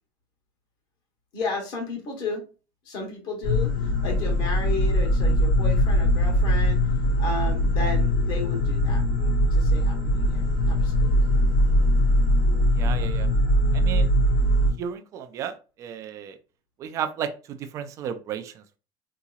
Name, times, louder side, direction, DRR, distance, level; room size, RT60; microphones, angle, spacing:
voice 1, 1.3-2.4 2.8-9.0 9.5-11.3 12.8-13.1, left 3 dB, 40° left, 2 dB, 1.2 m, -34 dB
sound 1, 3.4-14.7, equal, 70° left, 1.3 m, -21 dB
voice 2, 12.8-13.3 13.7-14.1 14.8-16.4 16.8-18.8, right 8 dB, 30° right, 8 dB, 0.4 m, -33 dB
3.8 x 2.8 x 2.3 m, 0.34 s
cardioid pair, 180°, 11 cm